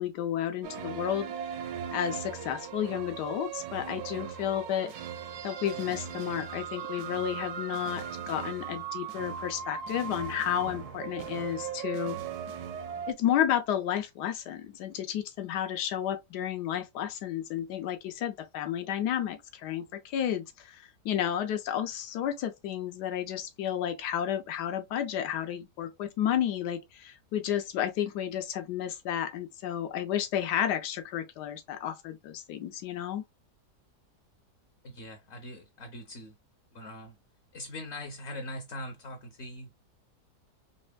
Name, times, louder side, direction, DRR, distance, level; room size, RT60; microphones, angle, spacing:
voice 1, 0.0-1.3 1.9-4.9 5.4-12.2 13.1-33.2, left 10 dB, 90° left, 1.3 m, -32 dB
sound 1, 0.6-13.1, right 8 dB, 75° right, 1.2 m, -38 dB
voice 2, 34.8-36.3 36.7-37.2 37.5-39.7, left 1 dB, 50° left, 0.9 m, -41 dB
4.2 x 3.2 x 2.2 m
omnidirectional pair, 1.8 m